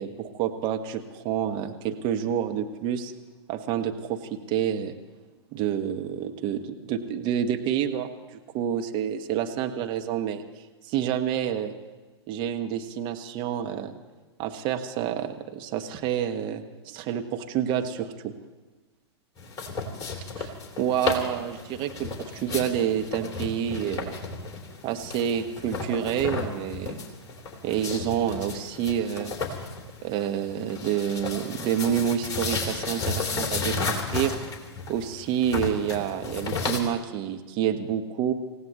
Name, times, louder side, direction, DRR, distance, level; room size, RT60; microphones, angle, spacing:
voice 1, 0.0-3.1 3.5-4.9 5.5-10.4 10.8-11.7 12.3-13.9 14.4-18.3 20.4-24.1 24.8-27.0 27.6-29.3 30.0-34.3 34.9-38.3, right 9 dB, 35° right, 6 dB, 1.4 m, -28 dB
sound 1, 19.4-36.8, left 4 dB, 25° left, 2.9 m, -33 dB
28.0 x 16.5 x 3.2 m, 1.3 s
figure-of-eight pair, 105°, 14 cm